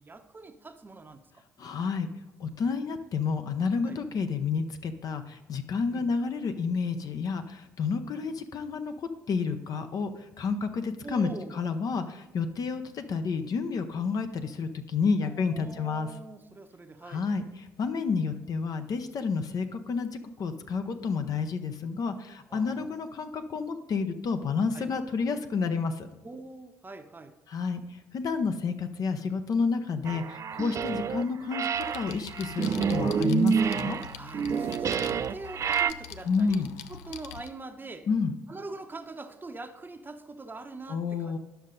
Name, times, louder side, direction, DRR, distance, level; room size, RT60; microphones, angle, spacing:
voice 1, 0.0-1.4 3.8-4.0 5.9-6.1 11.0-11.6 15.2-17.3 22.5-23.0 24.7-24.9 26.2-27.3 34.1-38.1 38.5-41.4, right 3 dB, 25° right, 7 dB, 0.9 m, -43 dB
voice 2, 1.6-2.1 2.4-16.1 17.0-26.1 27.5-34.0 36.2-36.7 38.1-38.4 40.9-41.4, left 5 dB, 50° left, 8 dB, 0.8 m, -30 dB
sound 1, 30.1-31.2 31.5-35.9, right 6 dB, 40° right, 0.4 m, -28 dB
sound 2, 31.7-37.5, left 8 dB, 80° left, 0.4 m, -44 dB
10.0 x 6.4 x 3.9 m, 1.0 s
hypercardioid pair, 50°, 8 cm